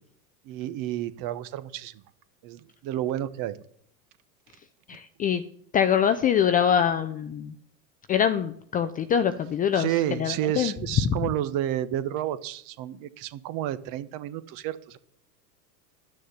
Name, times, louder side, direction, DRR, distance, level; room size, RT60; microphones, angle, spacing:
voice 1, 0.4-2.0 2.4-3.6 9.7-15.0, right 12 dB, 40° right, 14 dB, 1.0 m, -30 dB
voice 2, 4.9-5.4 5.7-7.5 8.1-10.7 11.0-11.2, left 8 dB, 20° left, 10 dB, 0.4 m, -24 dB
11.5 x 6.5 x 8.0 m, 0.65 s
hypercardioid pair, 110°, 49 cm